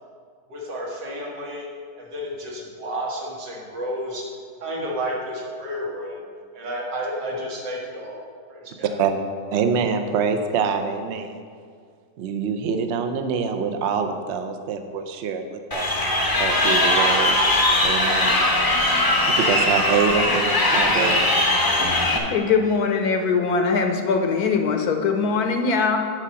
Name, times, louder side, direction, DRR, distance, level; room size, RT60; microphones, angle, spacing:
voice 1, 0.5-1.7 2.0-4.3 4.6-6.2 6.5-8.2 8.5-9.0, equal, 85° right, -3 dB, 2.4 m, -31 dB
voice 2, 9.5-11.4 12.2-15.9 16.4-17.4 17.8-18.5 19.3-21.2, right 6 dB, 55° right, 7 dB, 0.7 m, -25 dB
Crowd, 15.7-22.2, left 1 dB, 20° left, 0.6 m, -20 dB
voice 3, 22.3-26.0, left 5 dB, 65° left, 5 dB, 1.2 m, -21 dB
9.4 x 4.8 x 7.0 m, 2.1 s
omnidirectional pair, 1.9 m